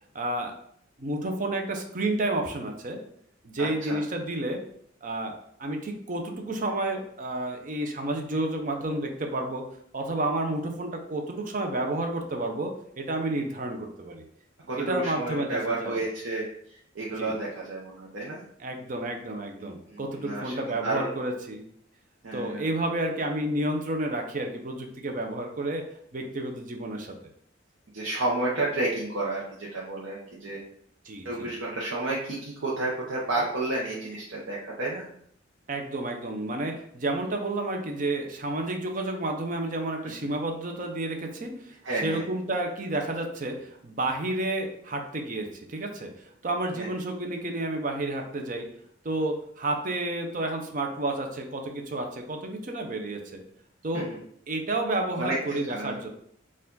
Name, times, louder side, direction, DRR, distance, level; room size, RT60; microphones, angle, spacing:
voice 1, 0.1-0.5 1.0-3.0 3.4-4.6 5.0-5.3 5.6-9.6 9.9-14.2 14.8-16.0 17.2-17.3 18.6-21.7 22.3-25.8 26.1-27.1 31.1-31.5 35.7-41.8 42.0-46.1 46.4-48.7 49.0-53.4 53.8-54.1 54.5-56.1, right 2 dB, 45° right, 3 dB, 0.6 m, -30 dB
voice 2, 3.6-4.0 14.7-16.4 16.9-18.4 19.6-20.5 20.8-21.1 22.2-22.7 27.9-30.6 31.2-35.1 40.1-40.2 41.8-42.2 46.7-46.9 53.9-54.2 55.2-56.0, right 2 dB, 85° right, -5 dB, 0.8 m, -31 dB
4.5 x 2.4 x 3.8 m, 0.67 s
head